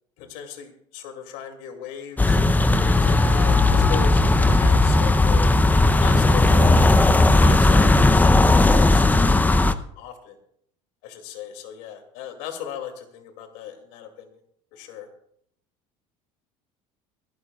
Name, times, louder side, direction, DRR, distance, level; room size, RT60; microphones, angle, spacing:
voice 1, 0.2-2.4 2.8-5.5 6.0-10.4 11.0-14.4 14.7-15.1, left 9 dB, 75° left, 5 dB, 2.6 m, -37 dB
Passing cars on wet cobblestone street light rain city, 2.2-9.7, left 2 dB, 10° left, 0.7 m, -16 dB
24.5 x 12.5 x 2.4 m, 0.68 s
supercardioid pair, 90°, 16 cm